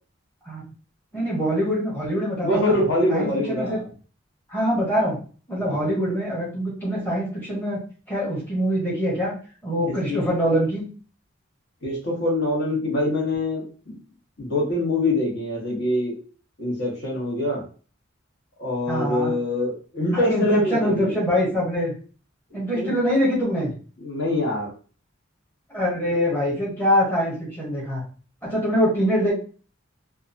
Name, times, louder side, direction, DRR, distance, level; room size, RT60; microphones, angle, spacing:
voice 1, 1.1-2.7 3.1-3.8 4.5-5.2 5.5-7.8 8.1-9.3 9.6-10.9 18.9-19.3 20.1-21.9 22.5-23.7 25.7-28.0 28.4-29.3, equal, 10° left, -6 dB, 0.9 m, -24 dB
voice 2, 2.4-3.8 5.6-5.8 10.1-10.3 11.8-14.0 14.4-16.2 16.6-17.6 18.6-21.2 22.5-22.9 24.0-24.7, left 1 dB, 60° left, -4 dB, 1.2 m, -24 dB
2.8 x 2.3 x 2.6 m, 0.38 s
head